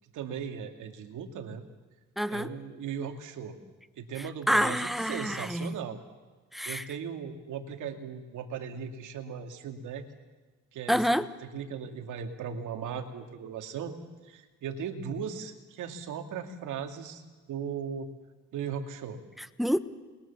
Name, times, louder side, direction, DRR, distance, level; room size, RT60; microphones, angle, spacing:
voice 1, 0.1-1.6 2.3-3.6 4.0-6.0 6.7-10.0 10.7-11.2 11.5-13.9 14.3-17.2 17.5-18.1 18.5-19.2, right 7 dB, 80° right, 5 dB, 2.5 m, -37 dB
voice 2, 2.2-2.5 4.2-5.8 6.5-6.9 10.9-11.3 19.4-19.8, equal, ahead, 13 dB, 1.2 m, -28 dB
28.5 x 21.5 x 7.2 m, 1.3 s
cardioid pair, 90°, 30 cm